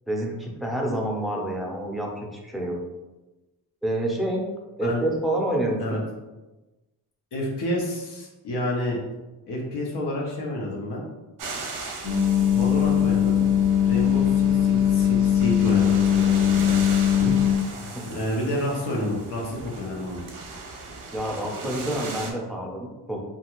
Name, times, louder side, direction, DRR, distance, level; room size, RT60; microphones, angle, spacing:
voice 1, 0.1-2.8 3.8-4.4 4.8-6.0 17.8-18.1 21.1-23.2, right 1 dB, ahead, -1 dB, 0.5 m, -28 dB
voice 2, 7.3-9.0 9.5-11.0 12.5-13.4 13.8-17.6 18.1-20.2, left 1 dB, 85° left, -2 dB, 0.8 m, -29 dB
sound 1, 11.4-22.3, right 3 dB, 55° right, 0.6 m, -38 dB
sound 2, 12.0-17.6, left 9 dB, 45° left, 0.6 m, -20 dB
2.5 x 2.3 x 2.9 m, 1.1 s
cardioid pair, 100°, 39 cm